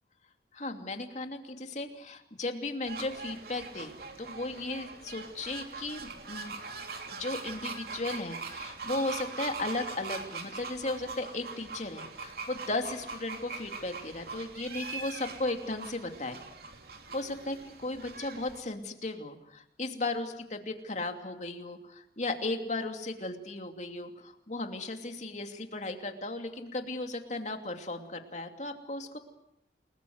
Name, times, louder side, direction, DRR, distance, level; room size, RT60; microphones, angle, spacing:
voice 1, 0.5-6.6 7.1-16.4 17.1-17.6 17.8-29.2, left 2 dB, 40° left, 5 dB, 2.8 m, -36 dB
sound 1, 2.8-18.6, right 4 dB, 60° right, 3.3 m, -42 dB
29.5 x 20.5 x 8.0 m, 0.79 s
head